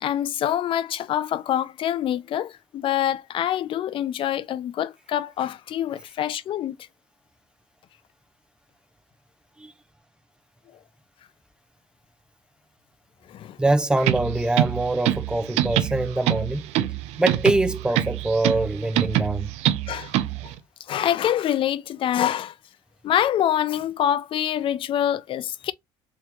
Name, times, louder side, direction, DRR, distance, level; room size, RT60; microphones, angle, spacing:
voice 1, 0.0-6.8 13.3-13.6 19.9-20.1 20.4-20.5 20.9-22.5 23.0-25.7, left 11 dB, 55° left, 0.4 m, -25 dB
voice 2, 13.6-16.6 17.2-19.5, right 2 dB, 10° right, 0.7 m, -24 dB
sound 1, 14.0-20.5, right 13 dB, 90° right, 0.5 m, -25 dB
3.5 x 3.0 x 3.4 m
cardioid pair, 110°, 11 cm